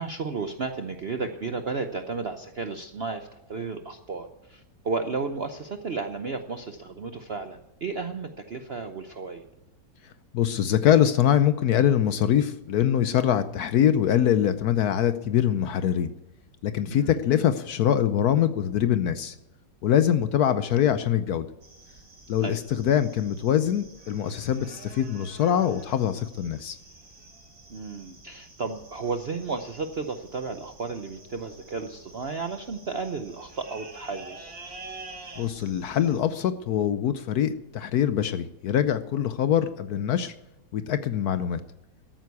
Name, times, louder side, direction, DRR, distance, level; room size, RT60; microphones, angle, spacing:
voice 1, 0.0-9.4 16.9-17.2 22.4-22.6 27.7-34.5, right 4 dB, 55° right, 6 dB, 0.7 m, -33 dB
voice 2, 10.3-16.1 16.6-19.3 19.8-21.5 22.3-26.8 35.4-40.3 40.7-41.6, left 10 dB, 70° left, 12 dB, 1.0 m, -23 dB
sound 1, 21.6-36.2, right 3 dB, 90° right, 4.0 m, -48 dB
13.5 x 9.2 x 8.3 m, 0.93 s
omnidirectional pair, 2.0 m